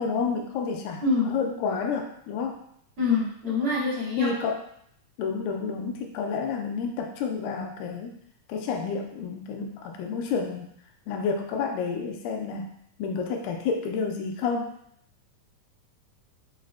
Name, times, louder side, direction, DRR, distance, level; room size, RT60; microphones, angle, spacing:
voice 1, 0.0-2.6 4.2-4.6 5.2-8.2 8.5-10.7 11.1-12.7 13.0-14.7, left 5 dB, 90° left, 3 dB, 2.2 m, -30 dB
voice 2, 1.0-1.3 3.0-4.3, left 3 dB, 50° right, -10 dB, 1.8 m, -25 dB
5.5 x 2.4 x 2.3 m, 0.69 s
omnidirectional pair, 3.8 m